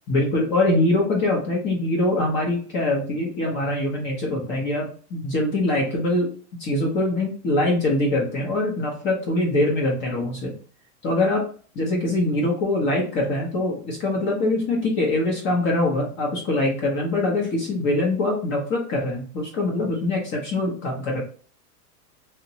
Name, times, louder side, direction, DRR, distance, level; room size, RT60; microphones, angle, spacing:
voice 1, 0.1-6.3 6.6-10.5 11.0-11.4 11.8-21.2, left 2 dB, 25° left, -1 dB, 0.5 m, -23 dB
2.9 x 2.1 x 2.6 m, 0.41 s
supercardioid pair, 135°, 47 cm